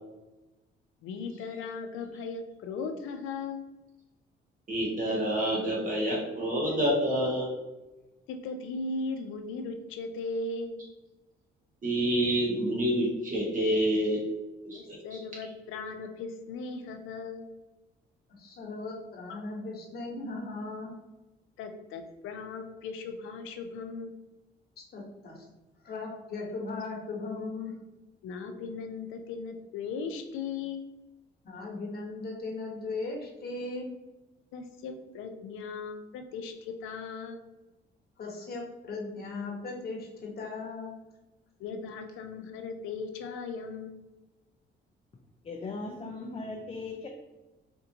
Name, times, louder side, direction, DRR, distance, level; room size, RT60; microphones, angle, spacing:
voice 1, 1.0-3.7 8.3-10.8 14.7-17.5 19.3-19.4 21.6-24.1 28.2-30.8 34.5-37.4 41.6-43.9, left 4 dB, 90° left, 6 dB, 0.5 m, -38 dB
voice 2, 4.7-7.5 11.8-14.2 14.6-15.0, equal, 40° right, -3 dB, 1.1 m, -27 dB
voice 3, 18.3-20.9 24.9-25.4 25.8-27.7 31.4-33.9 38.2-41.0, left 3 dB, 50° left, -1 dB, 1.1 m, -37 dB
voice 4, 45.4-47.1, left 3 dB, 30° left, 1 dB, 0.5 m, -38 dB
4.3 x 2.6 x 2.7 m, 1.1 s
cardioid pair, 90°, 20 cm